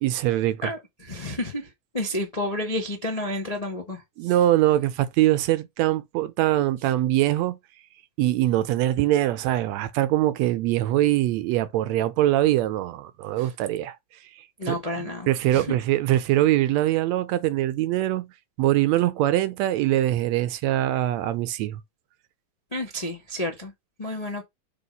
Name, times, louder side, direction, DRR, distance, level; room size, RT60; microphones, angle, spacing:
voice 1, 0.0-0.7 4.2-7.6 8.2-14.0 14.7-18.3 18.6-21.8, right 14 dB, 75° right, 1.8 m, -23 dB
voice 2, 0.6-1.7 1.9-4.0 13.4-13.5 14.6-15.8 22.7-23.7 24.0-24.4, left 1 dB, 55° left, 0.4 m, -30 dB
6.8 x 3.6 x 5.3 m
omnidirectional pair, 3.4 m